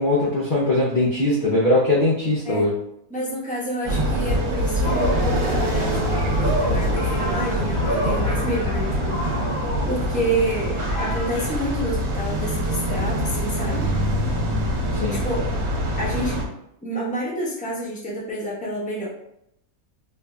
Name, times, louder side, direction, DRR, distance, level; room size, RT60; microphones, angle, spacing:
voice 1, 0.0-2.7 15.0-15.2, left 2 dB, 50° left, -4 dB, 0.7 m, -20 dB
voice 2, 3.1-9.2 9.9-13.9 15.1-15.4 16.0-16.4 16.8-19.1, right 1 dB, 5° left, -7 dB, 0.8 m, -29 dB
sound 1, 3.8-16.4, equal, 65° right, 1.3 m, -24 dB
sound 2, 4.8-11.5, equal, 70° left, 1.7 m, -29 dB
4.3 x 2.6 x 2.3 m, 0.78 s
omnidirectional pair, 1.6 m